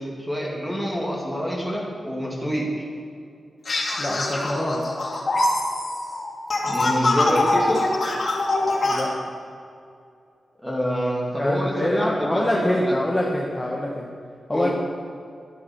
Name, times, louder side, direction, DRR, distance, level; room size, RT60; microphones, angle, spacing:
voice 1, 0.0-2.8 6.6-7.9 10.6-12.9 14.5-14.7, equal, 5° right, -3 dB, 2.9 m, -27 dB
sound 1, 3.7-9.0, left 2 dB, 40° left, 3.0 m, -23 dB
voice 2, 4.0-4.9 8.8-9.1 11.4-14.1 14.5-14.7, left 1 dB, 10° left, -3 dB, 1.5 m, -25 dB
12.0 x 12.0 x 6.4 m, 2.5 s
wide cardioid pair, 150°, 0 cm